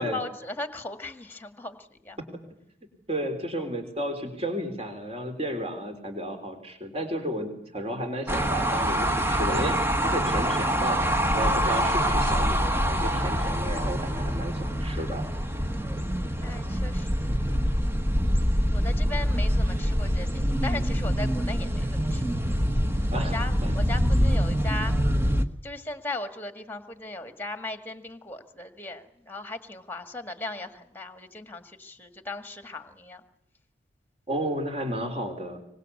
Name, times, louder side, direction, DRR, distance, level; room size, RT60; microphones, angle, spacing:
voice 1, 0.0-2.2 11.5-11.7 16.4-17.3 18.7-22.6 23.0-24.9 25.6-33.2, left 2 dB, 10° left, 8 dB, 1.7 m, -38 dB
voice 2, 3.1-11.0 11.3-15.2 23.1-23.4 23.6-23.8 34.3-35.6, equal, 30° right, 6 dB, 3.7 m, -32 dB
sound 1, 8.3-25.5, equal, 10° right, 1.1 m, -25 dB
24.0 x 20.5 x 8.4 m, 0.72 s
head